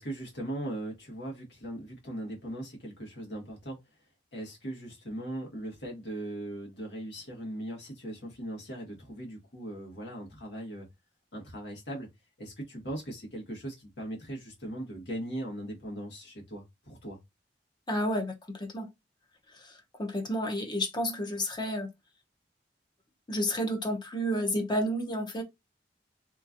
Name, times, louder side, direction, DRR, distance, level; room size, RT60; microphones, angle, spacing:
voice 1, 0.0-3.8 4.3-10.9 11.3-12.1 12.4-17.2, right 1 dB, 80° left, 1.3 m, -39 dB
voice 2, 17.9-18.9 19.5-21.9 23.3-25.4, equal, 25° left, 0.6 m, -31 dB
3.0 x 2.3 x 2.5 m
head